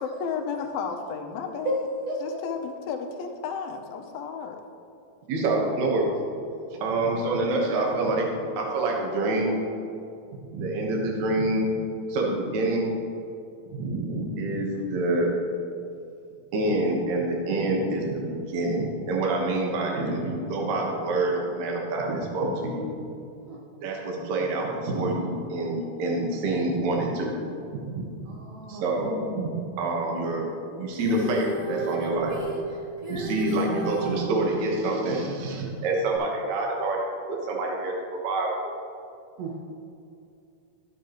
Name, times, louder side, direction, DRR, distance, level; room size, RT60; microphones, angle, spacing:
voice 1, 0.0-1.9 2.2-4.6, left 6 dB, 85° left, 4 dB, 2.6 m, -33 dB
voice 2, 5.3-6.2 6.7-9.6 10.3-11.7 12.1-12.9 13.7-15.3 16.5-22.9 23.8-27.3 27.7-28.1 28.7-30.5 30.8-32.5 33.1-38.7, right 2 dB, 60° right, -1 dB, 2.4 m, -27 dB
voice 3, 23.5-23.9 28.2-29.1 33.1-33.6 39.4-39.6, right 1 dB, 80° right, -2 dB, 1.4 m, -34 dB
Female singing, 30.9-34.2 36.2-36.3, right 2 dB, 20° right, 1.1 m, -33 dB
12.5 x 8.3 x 3.0 m, 2.5 s
omnidirectional pair, 4.1 m